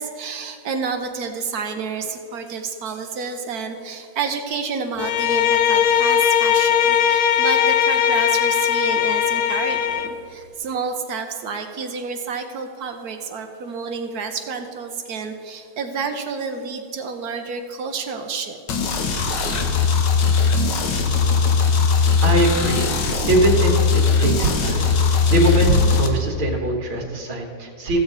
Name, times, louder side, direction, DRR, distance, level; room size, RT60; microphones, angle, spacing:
voice 1, 0.0-18.9, right 5 dB, 65° right, 6 dB, 1.0 m, -30 dB
Bowed string instrument, 5.0-10.2, left 9 dB, 80° left, 0.9 m, -19 dB
sound 1, 18.7-26.1, left 5 dB, 60° left, 1.5 m, -19 dB
voice 2, 22.0-28.0, right 1 dB, 80° right, -2 dB, 2.3 m, -22 dB
15.0 x 7.5 x 4.0 m, 2.5 s
omnidirectional pair, 2.3 m